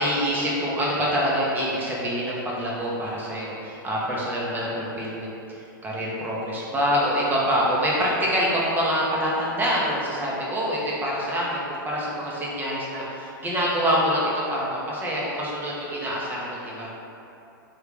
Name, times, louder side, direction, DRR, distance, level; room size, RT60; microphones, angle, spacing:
voice 1, 0.0-5.4 5.8-16.9, equal, 15° right, -5 dB, 0.8 m, -25 dB
3.5 x 2.4 x 3.2 m, 2.8 s
hypercardioid pair, 105°, 12 cm